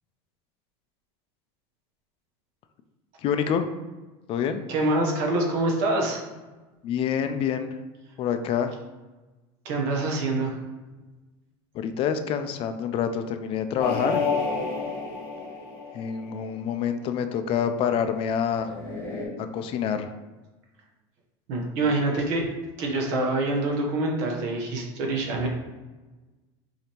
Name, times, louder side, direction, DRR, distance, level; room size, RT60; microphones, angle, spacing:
voice 1, 3.2-3.7 4.3-4.6 6.8-7.8 8.2-8.7 11.7-14.3 15.9-18.7 19.4-20.1 21.6-21.9, left 8 dB, 45° left, 8 dB, 0.4 m, -27 dB
voice 2, 4.7-6.2 9.6-10.5 21.5-22.4 22.8-25.5, right 2 dB, 65° right, 0 dB, 1.0 m, -25 dB
sound 1, 13.8-16.4 18.6-19.2, left 4 dB, 15° left, 1.3 m, -30 dB
5.0 x 2.8 x 3.0 m, 1.2 s
supercardioid pair, 125°, 14 cm